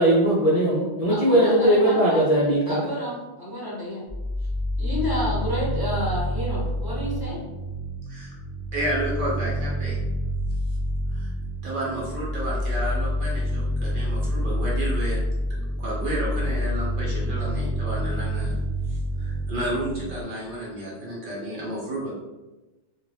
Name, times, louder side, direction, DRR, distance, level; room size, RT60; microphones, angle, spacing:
voice 1, 0.0-2.8, right 1 dB, 50° left, -6 dB, 0.5 m, -19 dB
voice 2, 1.1-2.2 2.7-4.0 4.8-7.4, left 1 dB, 20° right, -7 dB, 1.0 m, -30 dB
sound 1, 4.1-20.2, equal, 10° left, 0.7 m, -28 dB
voice 3, 8.7-10.0 11.1-11.3 11.6-15.2 15.8-18.6 18.9-22.1, right 1 dB, 60° right, -5 dB, 0.8 m, -31 dB
2.4 x 2.2 x 3.2 m, 1.1 s
omnidirectional pair, 1.1 m